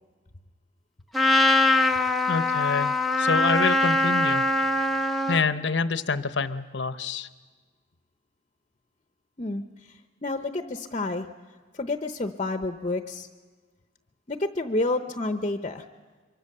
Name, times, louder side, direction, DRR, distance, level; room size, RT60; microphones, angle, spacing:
Trumpet, 1.1-5.4, left 2 dB, ahead, 0.8 m, -22 dB
voice 1, 2.3-4.5 5.3-7.3, left 4 dB, 75° left, 11 dB, 0.9 m, -27 dB
voice 2, 9.4-11.3 11.7-13.3 14.3-15.8, left 2 dB, 35° left, 7 dB, 0.8 m, -29 dB
24.5 x 23.5 x 6.7 m, 1.4 s
head